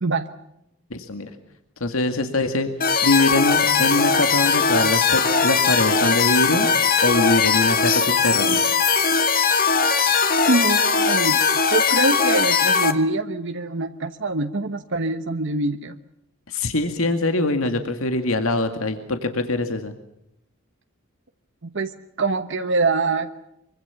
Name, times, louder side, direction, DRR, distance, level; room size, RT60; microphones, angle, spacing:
voice 1, 0.9-1.3 1.8-2.7 3.0-6.7 7.0-8.6 16.5-19.9, left 2 dB, 80° left, 7 dB, 2.1 m, -23 dB
sound 1, 2.8-12.9, left 5 dB, 45° left, 2.0 m, -19 dB
voice 2, 10.5-11.4 11.7-16.0 21.6-23.4, right 2 dB, 60° right, 7 dB, 1.2 m, -24 dB
25.0 x 24.5 x 7.1 m, 0.80 s
head